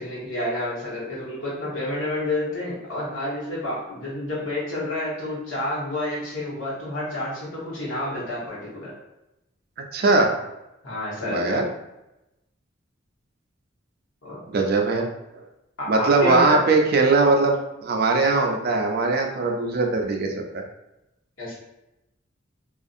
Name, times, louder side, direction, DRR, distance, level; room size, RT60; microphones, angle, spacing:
voice 1, 0.0-8.9 10.8-11.6 14.2-14.4 15.8-16.6 21.4-21.5, left 1 dB, 75° left, -7 dB, 1.2 m, -29 dB
voice 2, 9.9-10.3 11.3-11.6 14.5-15.1 15.9-20.6, right 3 dB, 50° right, 2 dB, 0.4 m, -20 dB
2.6 x 2.4 x 2.5 m, 0.92 s
head